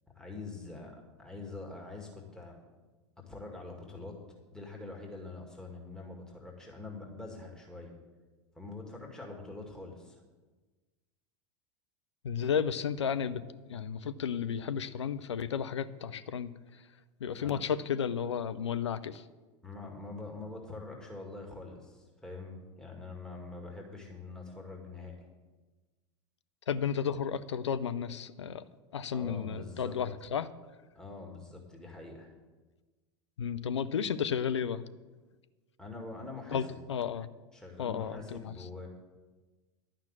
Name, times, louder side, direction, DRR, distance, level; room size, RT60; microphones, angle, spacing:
voice 1, 0.1-2.6 3.3-4.2 4.5-8.0 8.5-10.2 17.4-17.6 19.6-25.3 29.1-30.0 31.0-32.3 35.8-36.8 37.5-38.9, left 3 dB, 5° left, -1 dB, 2.1 m, -44 dB
voice 2, 12.2-16.5 17.2-19.2 26.7-28.6 28.9-30.5 33.4-34.8 36.5-37.3 37.8-38.5, left 7 dB, 70° left, 12 dB, 0.6 m, -33 dB
11.5 x 5.9 x 8.5 m, 1.3 s
figure-of-eight pair, 85°, 15 cm